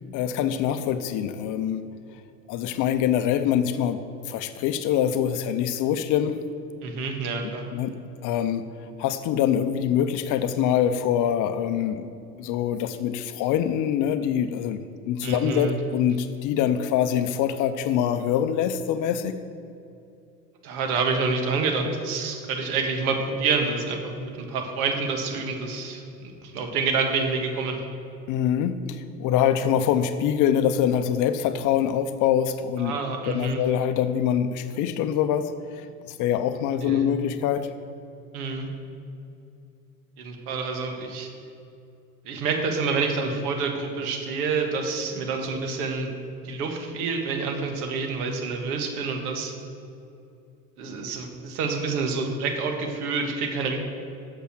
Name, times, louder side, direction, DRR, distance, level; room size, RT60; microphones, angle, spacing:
voice 1, 0.1-1.8 2.5-4.0 4.3-6.4 7.7-7.9 8.2-8.6 9.0-12.1 12.4-19.4 28.3-32.9 33.3-35.5 35.8-37.7, left 9 dB, 40° left, 11 dB, 0.6 m, -24 dB
voice 2, 6.8-7.7 15.2-15.8 20.6-27.8 32.8-33.6 36.8-37.1 38.3-38.7 40.2-41.3 42.2-46.1 46.4-49.5 50.8-53.8, right 4 dB, 65° right, 4 dB, 1.6 m, -28 dB
8.3 x 7.0 x 6.1 m, 2.6 s
hypercardioid pair, 85°, 47 cm